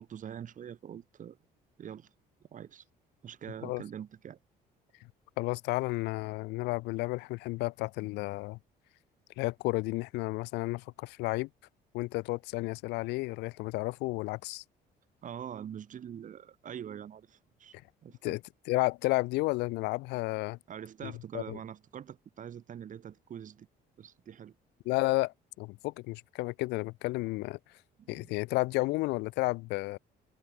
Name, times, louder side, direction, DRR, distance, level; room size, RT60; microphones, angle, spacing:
voice 1, 0.0-1.4 1.8-2.1 2.5-2.8 3.2-4.4 15.2-17.8 18.0-18.4 20.7-23.7 24.0-24.5 28.0-28.3, right 9 dB, 50° right, 5.1 m, -44 dB
voice 2, 5.4-8.6 9.4-11.5 11.9-14.6 18.2-18.4 18.7-20.6 21.0-21.6 24.9-27.6 28.1-30.0, left 22 dB, 90° left, 0.6 m, -32 dB
cardioid pair, 110°, 17 cm